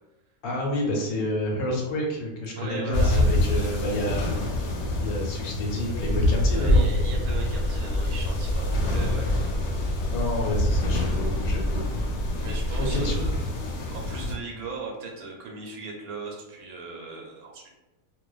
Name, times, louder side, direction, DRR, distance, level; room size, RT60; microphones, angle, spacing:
voice 1, 0.4-4.3 5.0-6.8 10.1-12.1 12.8-13.1, left 1 dB, 90° left, -1 dB, 1.2 m, -29 dB
voice 2, 2.5-3.8 6.5-9.3 10.3-10.4 12.4-13.4 13.9-17.7, right 4 dB, 90° right, 0 dB, 1.1 m, -38 dB
sound 1, 2.9-14.3, left 1 dB, 75° left, 0.9 m, -26 dB
sound 2, 6.0-13.4, equal, 70° right, 0.9 m, -29 dB
2.5 x 2.2 x 2.2 m, 1.0 s
omnidirectional pair, 1.5 m